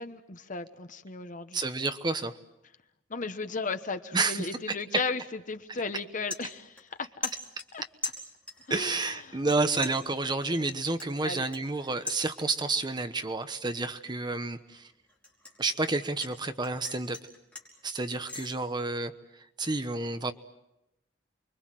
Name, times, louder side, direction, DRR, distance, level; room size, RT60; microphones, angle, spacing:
voice 1, 0.0-1.6 3.1-7.3 7.7-7.8 8.7-9.4 11.2-11.4, left 4 dB, 45° left, 9 dB, 1.2 m, -35 dB
voice 2, 1.5-2.3 4.1-4.5 8.7-14.9 15.6-17.2 17.8-19.1 19.6-20.3, right 3 dB, 25° right, 9 dB, 1.1 m, -30 dB
sound 1, 5.4-5.6 6.0-7.0 7.2-8.7 9.0-9.6 9.8-12.7 13.1-13.5 13.9-16.3 16.6-18.5, left 2 dB, 5° left, 4.9 m, -41 dB
29.5 x 23.0 x 7.7 m, 0.91 s
head